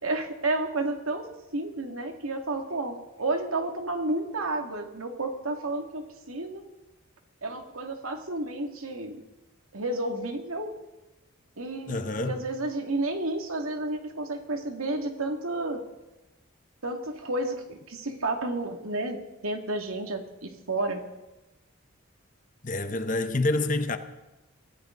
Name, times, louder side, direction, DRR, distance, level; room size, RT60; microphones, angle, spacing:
voice 1, 0.0-1.3 1.5-6.6 7.4-9.2 9.7-10.7 11.6-15.8 16.8-21.0, right 2 dB, 90° right, 2.3 m, -31 dB
voice 2, 11.9-12.5 22.6-24.0, left 2 dB, 40° left, 1.0 m, -27 dB
23.0 x 16.0 x 3.9 m
head